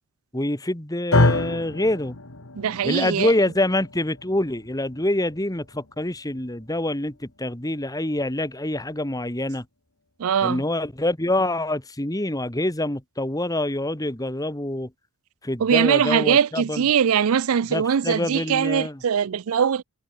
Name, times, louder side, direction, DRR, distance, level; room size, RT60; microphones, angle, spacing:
voice 1, 0.3-2.2 2.8-9.7 10.4-14.9 15.4-16.9 17.7-19.0, left 1 dB, 15° left, 1.9 m, -26 dB
sound 1, 1.1-9.4, left 2 dB, 65° left, 2.2 m, -29 dB
voice 2, 2.6-3.3 10.2-10.6 15.6-19.8, right 7 dB, 70° right, 0.4 m, -21 dB
head